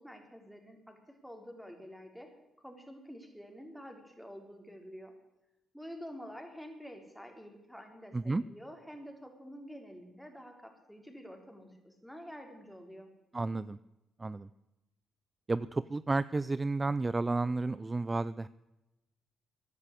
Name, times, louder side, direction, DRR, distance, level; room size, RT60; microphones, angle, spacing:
voice 1, 0.0-2.3 2.6-5.1 5.7-13.1, equal, ahead, 4 dB, 3.7 m, -48 dB
voice 2, 13.3-13.8 14.2-14.5 15.5-18.5, right 3 dB, 25° right, 17 dB, 0.4 m, -32 dB
14.5 x 10.5 x 8.4 m, 0.99 s
supercardioid pair, 70°, 0 cm